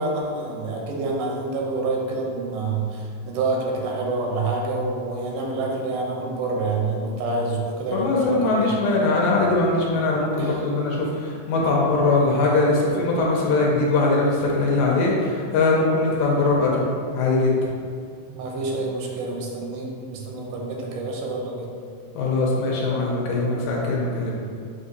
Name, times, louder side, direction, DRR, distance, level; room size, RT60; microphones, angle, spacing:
voice 1, 0.0-8.7 10.4-10.6 18.3-21.7, right 3 dB, 85° right, -1 dB, 2.2 m, -27 dB
voice 2, 7.9-17.6 22.1-24.4, left 3 dB, 80° left, -3 dB, 2.1 m, -21 dB
6.4 x 2.6 x 2.6 m, 2.3 s
omnidirectional pair, 3.7 m